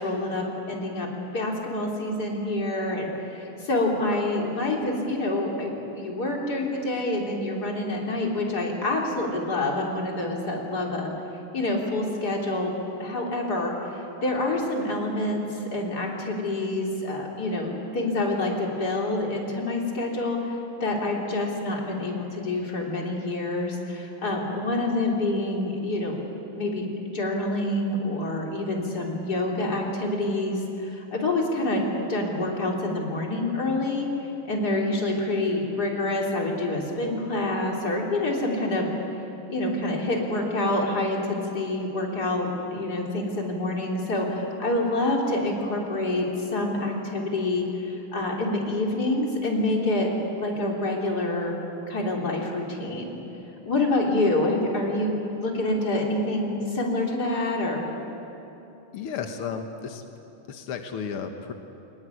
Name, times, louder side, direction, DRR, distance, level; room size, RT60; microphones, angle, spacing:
voice 1, 0.0-11.1 11.5-12.7 13.0-13.7 14.2-20.6 20.8-26.2 26.5-31.8 32.1-34.1 34.5-38.9 39.5-50.1 50.4-51.6 51.9-53.2 53.7-57.8, left 2 dB, 25° left, -1 dB, 3.5 m, -27 dB
voice 2, 58.9-60.0 60.5-61.5, left 6 dB, 85° left, 5 dB, 1.2 m, -33 dB
24.0 x 19.5 x 9.8 m, 3.0 s
omnidirectional pair, 4.3 m